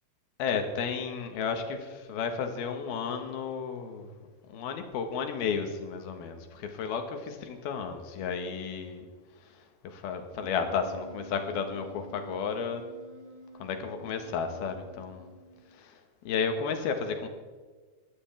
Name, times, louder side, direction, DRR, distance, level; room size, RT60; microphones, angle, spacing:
voice 1, 0.4-4.1 4.5-9.1 9.8-12.8 13.6-15.3 15.8-16.0 16.2-17.3, left 6 dB, 75° left, 6 dB, 3.4 m, -33 dB
Wind instrument woodwind instrument, 10.4-15.8, right 1 dB, 35° right, 2.8 m, -49 dB
22.0 x 15.0 x 3.6 m, 1.4 s
omnidirectional pair, 4.6 m